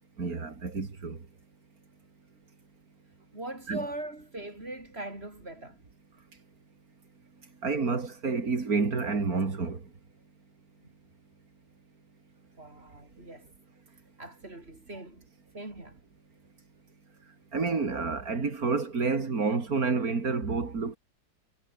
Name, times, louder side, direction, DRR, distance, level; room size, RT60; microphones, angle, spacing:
voice 1, 0.2-1.2 3.7-3.9 7.6-9.8 17.5-21.0, right 4 dB, 55° right, 3.2 m, -29 dB
voice 2, 3.3-5.8 10.8-10.9 12.6-13.5 14.2-15.2 15.5-16.0, right 2 dB, 35° right, 5.4 m, -41 dB
omnidirectional pair, 1.9 m